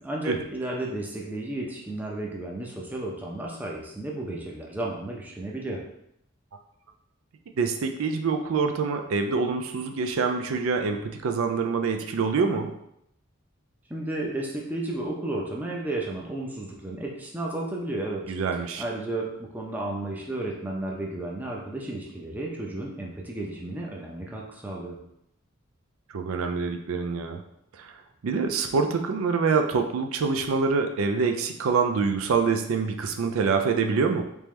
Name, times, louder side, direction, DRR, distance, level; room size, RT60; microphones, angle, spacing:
voice 1, 0.0-5.8 13.9-18.3 18.8-25.0, right 2 dB, 10° right, -2 dB, 0.5 m, -33 dB
voice 2, 7.6-12.7 18.3-18.8 26.1-27.4 27.8-27.9 28.2-34.2, right 5 dB, 90° right, 5 dB, 0.4 m, -25 dB
3.5 x 2.9 x 3.2 m, 0.77 s
head